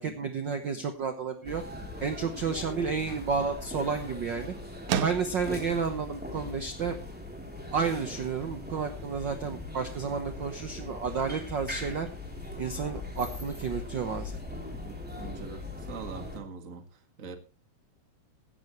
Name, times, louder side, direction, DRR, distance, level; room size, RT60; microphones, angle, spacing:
voice 1, 0.0-1.6 2.0-4.5 5.0-7.0 7.7-12.1 12.6-14.4, right 5 dB, 55° right, 7 dB, 1.3 m, -31 dB
sound 1, 1.4-16.4, left 2 dB, 5° right, 2.8 m, -40 dB
sound 2, 2.9-12.6, right 9 dB, 85° right, 2.5 m, -42 dB
voice 2, 14.7-17.4, right 5 dB, 30° right, 7 dB, 1.8 m, -43 dB
16.5 x 13.5 x 3.1 m, 0.30 s
omnidirectional pair, 3.4 m